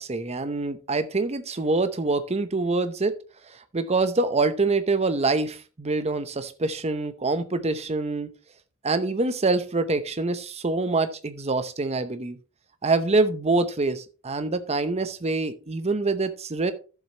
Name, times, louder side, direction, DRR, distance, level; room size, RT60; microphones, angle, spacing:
voice 1, 0.0-3.1 3.5-8.3 8.8-12.4 12.8-16.7, right 3 dB, 30° right, 11 dB, 0.8 m, -25 dB
13.0 x 7.4 x 3.0 m, 0.34 s
head